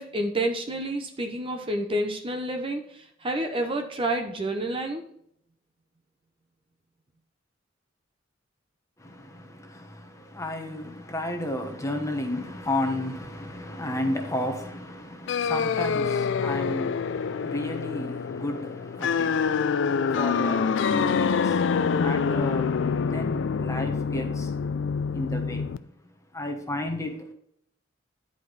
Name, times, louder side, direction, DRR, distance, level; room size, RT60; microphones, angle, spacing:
voice 1, 0.0-5.1, right 1 dB, 25° right, 0.8 m, -29 dB
voice 2, 9.0-24.8 25.1-25.8 26.3-27.3, left 1 dB, 15° left, 1.1 m, -33 dB
sound 1, 15.3-25.8, left 6 dB, 65° left, 0.4 m, -26 dB
10.5 x 5.0 x 4.0 m
head